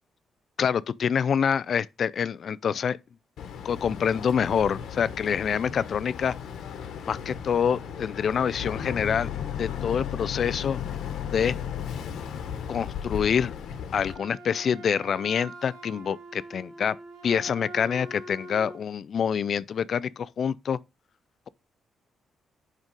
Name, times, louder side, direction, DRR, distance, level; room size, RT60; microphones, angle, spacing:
voice 1, 0.6-3.0 3.6-6.3 7.1-9.3 9.6-10.8 11.3-11.6 12.7-13.5 13.9-17.0 17.2-20.8, left 7 dB, 55° left, 0.4 m, -26 dB
Boat Water vehicle, 3.4-14.1, left 8 dB, 80° left, 1.2 m, -35 dB
Wind instrument woodwind instrument, 14.0-18.9, right 1 dB, 85° right, 2.5 m, -44 dB
6.2 x 5.4 x 5.2 m
cardioid pair, 95°, 0 cm